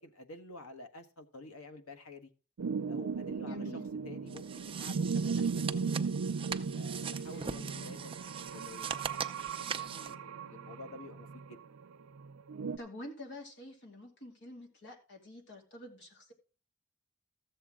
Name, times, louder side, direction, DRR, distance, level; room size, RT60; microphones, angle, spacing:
voice 1, 0.0-2.3 2.9-6.0 6.7-11.6, left 2 dB, 85° left, 1.3 m, -51 dB
sound 1, 2.6-12.8, right 5 dB, 75° right, 0.5 m, -37 dB
voice 2, 3.4-3.9 7.3-8.0 12.8-16.3, left 1 dB, 55° left, 2.6 m, -48 dB
sound 2, 4.3-10.1, right 6 dB, 25° right, 0.5 m, -41 dB
14.0 x 7.9 x 3.7 m
head